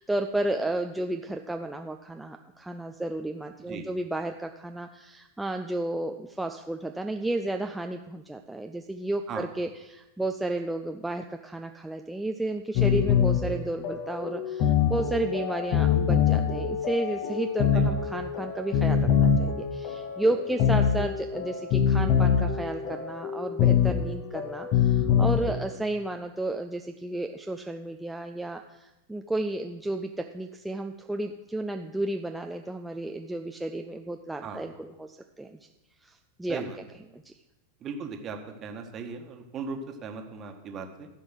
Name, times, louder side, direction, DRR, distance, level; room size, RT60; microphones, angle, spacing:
voice 1, 0.0-35.6 36.0-36.6 37.1-37.3, right 2 dB, 5° right, 4 dB, 0.5 m, -32 dB
sound 1, 12.8-25.7, left 7 dB, 40° left, 1.2 m, -24 dB
voice 2, 37.8-41.1, right 5 dB, 30° right, 4 dB, 1.4 m, -37 dB
14.0 x 5.3 x 6.3 m, 0.98 s
figure-of-eight pair, 90°, 0 cm